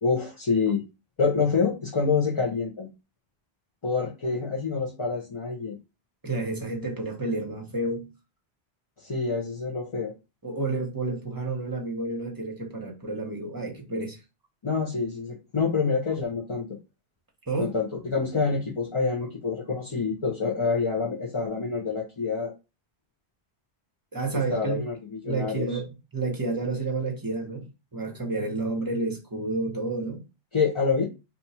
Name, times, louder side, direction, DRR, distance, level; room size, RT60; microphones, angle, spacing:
voice 1, 0.0-0.8 1.2-2.9 3.8-5.8 9.0-10.1 14.6-16.8 17.6-22.5 24.3-25.8 30.5-31.1, left 5 dB, 35° left, 0.6 m, -27 dB
voice 2, 6.2-8.1 10.4-14.2 17.5-17.7 24.1-24.9 25.2-25.9 26.1-30.2, right 2 dB, 20° right, 0.9 m, -30 dB
2.8 x 2.3 x 4.1 m
omnidirectional pair, 1.1 m